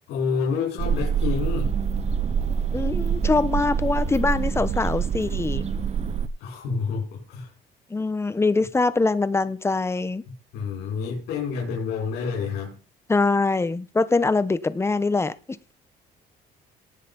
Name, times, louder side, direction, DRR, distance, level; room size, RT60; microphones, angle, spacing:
voice 1, 0.1-1.7 6.4-7.5 10.5-12.8, left 5 dB, 85° left, -1 dB, 4.8 m, -28 dB
sound 1, 0.8-6.3, right 6 dB, 40° right, 1.1 m, -25 dB
voice 2, 2.7-5.7 7.9-10.2 13.1-15.3, left 3 dB, 15° left, 14 dB, 1.0 m, -23 dB
18.5 x 6.7 x 5.4 m, 0.36 s
cardioid pair, 110°, 17 cm